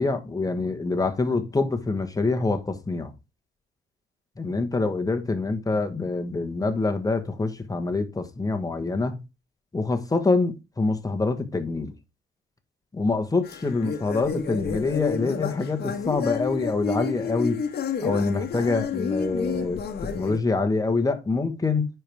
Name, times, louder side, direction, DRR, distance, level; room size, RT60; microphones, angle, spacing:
voice 1, 0.0-3.1 4.4-9.2 9.7-11.9 12.9-17.6 18.0-19.8 20.1-21.9, left 3 dB, 20° left, 1.3 m, -25 dB
sound 1, 13.4-20.4, left 6 dB, 55° left, 1.2 m, -30 dB
10.0 x 4.6 x 3.5 m
cardioid pair, 90°, 20 cm